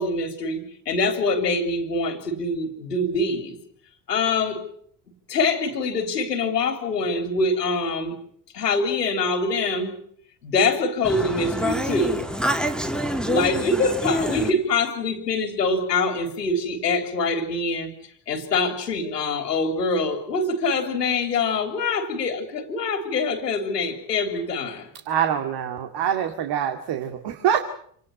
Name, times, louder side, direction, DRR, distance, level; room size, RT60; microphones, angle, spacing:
voice 1, 0.0-3.6 4.1-4.6 5.3-8.1 8.5-9.9 10.4-12.2 13.3-17.9 18.3-24.9, left 3 dB, 85° left, 9 dB, 3.6 m, -24 dB
voice 2, 11.1-14.5, equal, ahead, 6 dB, 2.3 m, -26 dB
voice 3, 25.1-27.6, right 9 dB, 55° right, 7 dB, 2.4 m, -24 dB
27.0 x 19.0 x 7.8 m, 0.62 s
hypercardioid pair, 65°, 47 cm